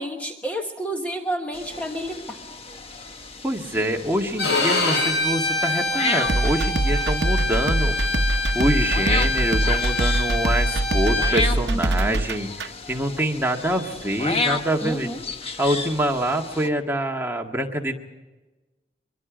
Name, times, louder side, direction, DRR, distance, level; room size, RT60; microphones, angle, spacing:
voice 1, 0.0-2.4 11.7-12.2 14.8-15.2, right 1 dB, 10° left, 3 dB, 1.3 m, -30 dB
sound 1, 1.5-16.7, left 3 dB, 35° left, 1.3 m, -33 dB
voice 2, 3.4-7.9 8.5-15.1 15.6-17.9, right 1 dB, 15° right, 2 dB, 1.7 m, -25 dB
Bowed string instrument, 4.4-11.4, left 3 dB, 70° left, 5.6 m, -25 dB
sound 2, 6.3-12.7, right 2 dB, 70° right, 0.8 m, -23 dB
24.0 x 23.5 x 5.1 m, 1.1 s
head